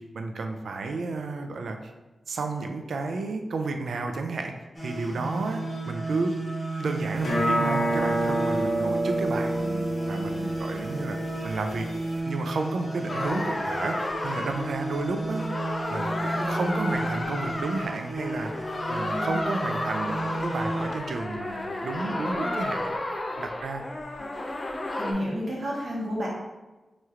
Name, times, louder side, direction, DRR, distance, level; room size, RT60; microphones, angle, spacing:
voice 1, 0.0-1.8 2.3-4.5 4.8-6.4 6.8-11.2 11.4-11.9 12.2-15.5 15.9-18.5 18.9-22.9 23.4-23.8, right 3 dB, 85° right, 5 dB, 0.3 m, -32 dB
sound 1, 4.7-20.9, right 2 dB, 5° left, 0.8 m, -33 dB
sound 2, 7.2-12.2, right 1 dB, 80° left, 0.7 m, -29 dB
sound 3, 13.1-25.1, left 1 dB, 30° left, 0.4 m, -32 dB
voice 2, 19.0-19.3 22.4-22.5 25.0-26.3, equal, 45° right, -4 dB, 1.0 m, -31 dB
3.0 x 2.4 x 4.2 m, 1.1 s
wide cardioid pair, 170°, 0 cm